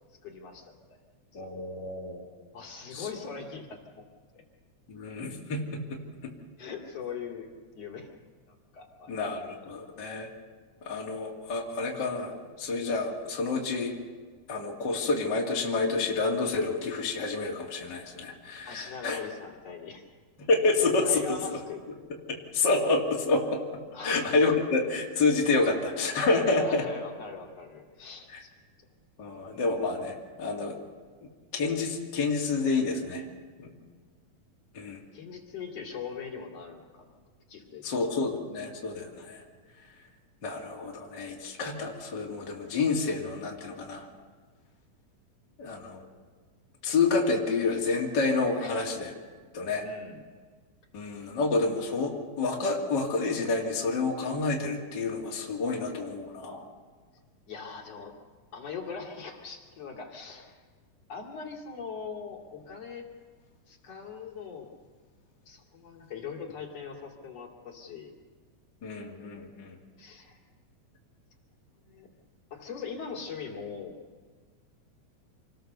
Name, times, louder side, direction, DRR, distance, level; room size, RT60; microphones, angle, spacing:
voice 1, 0.2-1.0 1.3-1.4 2.5-4.1 4.3-4.4 6.6-8.1 8.5-9.1 18.7-20.0 21.0-21.8 23.9-24.3 26.5-28.5 35.1-37.2 37.5-37.8 48.6-48.9 49.8-50.2 57.5-58.1 58.5-60.6 61.1-63.1 63.7-64.7 65.5-68.2 69.1-69.5 70.0-70.4 71.8-72.1 72.5-74.0, left 5 dB, 55° left, 0 dB, 3.6 m, -41 dB
voice 2, 1.3-2.3 2.9-3.1 4.9-6.3 9.1-10.3 10.8-14.0 14.5-19.2 20.4-21.4 22.3-26.8 28.3-28.4 29.2-30.8 31.2-33.2 33.6-33.7 34.7-35.0 37.8-39.4 40.4-44.1 45.6-46.1 46.8-49.1 49.5-49.8 50.9-56.6 68.8-69.8, left 3 dB, 35° left, -2 dB, 2.8 m, -29 dB
27.0 x 19.5 x 6.8 m, 1.6 s
omnidirectional pair, 3.5 m